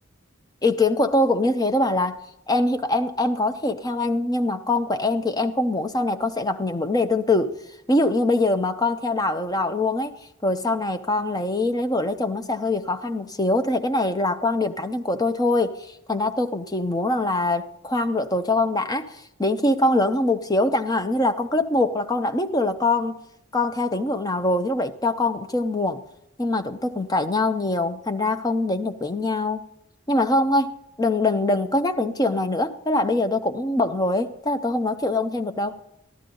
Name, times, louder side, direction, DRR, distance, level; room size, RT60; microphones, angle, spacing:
voice 1, 0.6-2.2 2.5-7.6 7.9-10.1 10.4-23.2 23.5-26.0 26.4-29.6 30.1-35.8, left 2 dB, 20° left, 7 dB, 0.7 m, -23 dB
13.5 x 12.5 x 3.8 m, 0.82 s
head